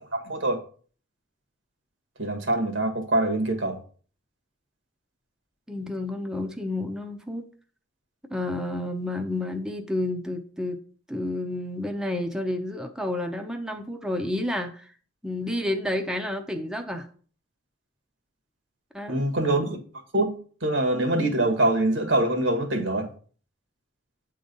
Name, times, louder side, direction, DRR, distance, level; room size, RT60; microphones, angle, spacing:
voice 1, 0.1-0.6 2.2-3.8 19.1-19.8 20.1-23.1, right 1 dB, 85° right, 1.7 m, -24 dB
voice 2, 5.7-7.5 8.3-10.8 11.1-14.9 15.2-17.1 18.9-19.2, left 1 dB, 5° right, 0.7 m, -30 dB
9.0 x 3.9 x 5.3 m
head